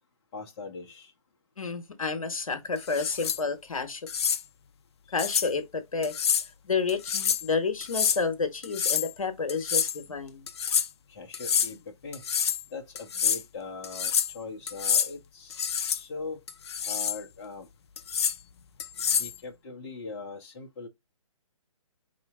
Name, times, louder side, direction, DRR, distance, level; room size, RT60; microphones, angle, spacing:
voice 1, 0.3-1.1 11.1-12.2 12.7-16.4 16.8-17.7 19.1-20.9, left 4 dB, 30° left, 1.1 m, -41 dB
voice 2, 1.6-4.1 5.1-6.1 6.6-10.5, left 4 dB, 75° left, 1.2 m, -30 dB
sound 1, 2.9-3.4 4.1-4.4 5.2-5.5 6.0-6.5 6.9-7.5 7.8-8.2 8.6-9.1 9.5-10.0 10.5-10.9 11.3-11.7 12.1-12.6 12.9-13.4 13.8-14.3 14.7-15.1 15.5-16.0 16.5-17.2 18.0-18.4 18.8-19.3, left 8 dB, 50° left, 0.5 m, -27 dB
4.9 x 2.8 x 3.6 m
figure-of-eight pair, 140°, 18 cm